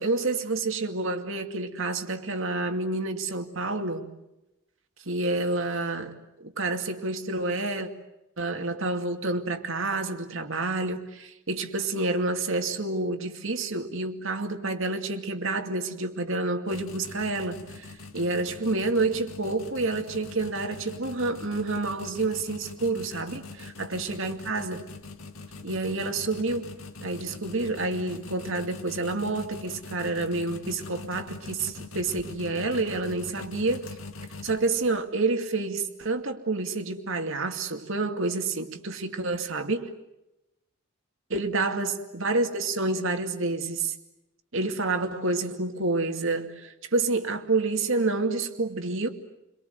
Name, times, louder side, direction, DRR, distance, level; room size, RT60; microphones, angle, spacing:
voice 1, 0.0-4.1 5.1-7.9 8.4-17.9 18.1-24.8 25.6-26.7 27.0-33.9 34.4-39.9 41.3-43.9 44.5-49.1, right 3 dB, 65° right, 2.4 m, -28 dB
sound 1, 16.7-35.0, left 3 dB, 70° left, 2.2 m, -43 dB
29.5 x 23.0 x 8.1 m
head